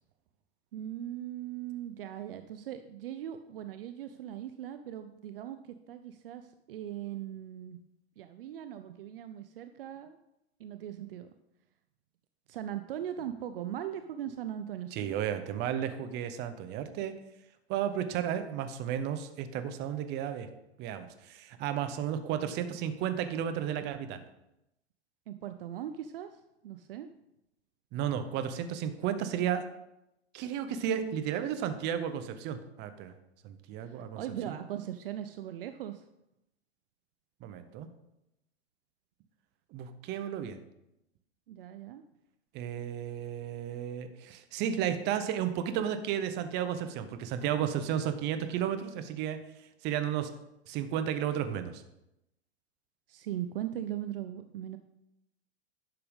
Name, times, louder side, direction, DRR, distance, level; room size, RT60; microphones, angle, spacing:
voice 1, 0.7-7.8 8.2-10.2 10.6-11.3 12.5-15.2 25.3-27.1 33.8-36.0 41.5-42.0 53.1-54.8, right 11 dB, 55° right, 10 dB, 0.6 m, -39 dB
voice 2, 14.9-17.1 17.7-20.5 20.8-24.2 27.9-29.6 30.3-33.1 33.4-34.2 34.5-34.6 37.4-37.9 39.7-40.6 42.5-49.4 49.8-50.3 50.7-51.8, right 9 dB, 30° right, 9 dB, 0.9 m, -33 dB
11.0 x 6.8 x 3.6 m, 0.87 s
hypercardioid pair, 110°, 33 cm